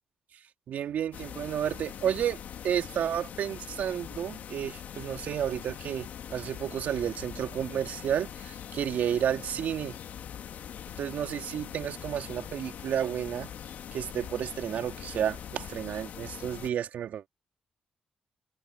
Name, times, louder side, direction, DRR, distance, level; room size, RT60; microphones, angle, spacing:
voice 1, 0.7-10.0 11.0-13.5 13.9-17.3, right 9 dB, 75° right, 2.8 m, -31 dB
sound 1, 1.1-16.7, left 9 dB, 75° left, 1.8 m, -42 dB
supercardioid pair, 45°, 3 cm